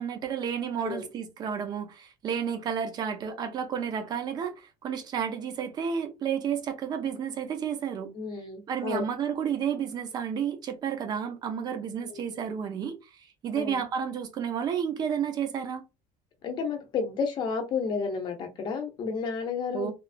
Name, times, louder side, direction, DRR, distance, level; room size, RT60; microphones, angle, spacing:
voice 1, 0.0-8.1 8.7-13.0 13.4-15.8 19.7-19.9, right 7 dB, 30° right, 0.5 m, -31 dB
voice 2, 8.1-9.0 12.0-12.2 13.6-13.8 16.4-19.9, left 5 dB, 35° left, 0.7 m, -31 dB
3.0 x 2.3 x 2.5 m
cardioid pair, 180°, 14 cm